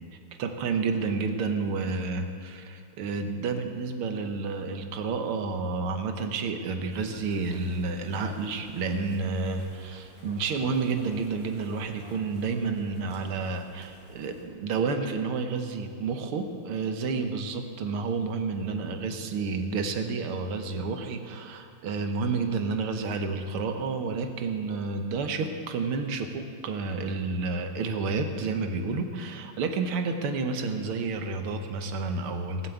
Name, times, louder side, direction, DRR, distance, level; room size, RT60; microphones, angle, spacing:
voice 1, 0.4-32.7, right 4 dB, 85° right, 6 dB, 1.9 m, -30 dB
sound 1, 6.9-14.4, right 1 dB, 30° right, 2.4 m, -51 dB
18.5 x 7.5 x 8.3 m, 2.2 s
omnidirectional pair, 2.4 m